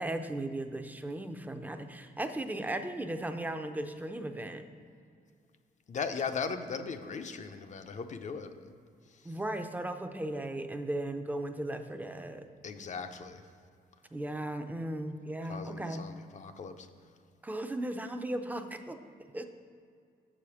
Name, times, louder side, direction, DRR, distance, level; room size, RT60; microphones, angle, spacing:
voice 1, 0.0-4.6 9.2-12.4 14.1-16.1 17.4-19.0 19.3-19.5, right 1 dB, 10° right, 7 dB, 0.5 m, -36 dB
voice 2, 5.9-8.5 9.1-9.3 12.6-13.4 15.4-16.9, left 5 dB, 45° left, 7 dB, 0.6 m, -38 dB
6.8 x 5.0 x 7.0 m, 2.3 s
cardioid pair, 105°, 17 cm